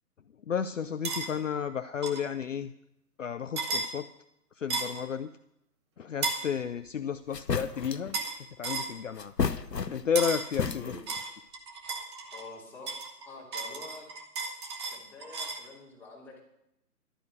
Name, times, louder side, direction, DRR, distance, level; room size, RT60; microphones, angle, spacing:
voice 1, 0.5-2.7 3.2-4.1 4.6-5.3 6.0-8.2 8.6-9.3 9.9-10.9, left 7 dB, 50° left, 10 dB, 0.6 m, -32 dB
sound 1, 1.0-1.3 2.0-2.3 3.6-3.9 4.7-5.0 6.2-6.5 8.1-8.4 8.6-8.9 10.2-10.5 11.1-12.5 12.9-15.7, right 4 dB, 15° right, 0.9 m, -34 dB
sound 2, 6.9-7.0 7.3-8.1 9.2-10.2 10.5-11.2, left 5 dB, 90° left, 0.9 m, -32 dB
voice 2, 12.3-14.0 14.9-16.4, left 3 dB, 5° left, -6 dB, 2.8 m, -47 dB
12.0 x 9.5 x 6.5 m, 0.80 s
figure-of-eight pair, 140°, 48 cm